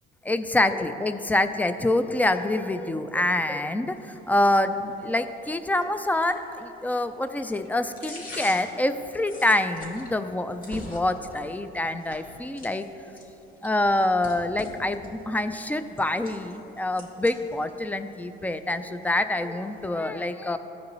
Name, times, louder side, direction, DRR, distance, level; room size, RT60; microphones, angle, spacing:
voice 1, 0.2-12.9 13.6-20.6, left 1 dB, 10° left, 10 dB, 0.3 m, -26 dB
sonido cinta, 3.9-19.9, left 2 dB, 50° left, 1.8 m, -47 dB
14.5 x 5.1 x 3.1 m, 3.0 s
cardioid pair, 110°, 19 cm